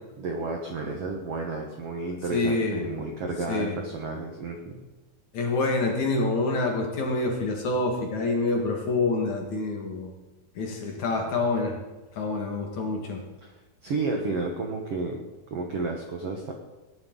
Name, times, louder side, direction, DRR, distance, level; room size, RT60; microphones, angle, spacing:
voice 1, 0.2-4.8 13.4-13.5 13.8-15.2 15.5-16.5, right 3 dB, 65° right, 2 dB, 1.5 m, -31 dB
voice 2, 2.3-2.9 3.5-3.7 5.3-10.1 10.6-11.8 12.2-13.2, left 3 dB, 55° left, 1 dB, 2.9 m, -27 dB
19.0 x 10.5 x 3.9 m, 1.2 s
omnidirectional pair, 4.5 m